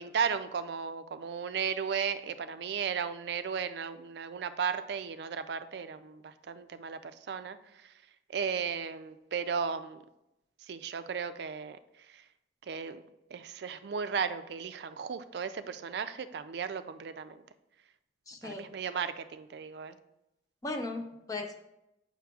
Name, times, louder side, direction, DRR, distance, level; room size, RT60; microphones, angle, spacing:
voice 1, 0.0-7.6 8.3-10.0 10.7-11.8 12.7-13.0 13.3-17.4 18.4-19.9, right 6 dB, 65° right, 11 dB, 0.4 m, -35 dB
voice 2, 18.3-18.7 20.6-21.6, left 2 dB, 20° left, 4 dB, 0.5 m, -37 dB
7.2 x 5.7 x 2.3 m, 0.88 s
head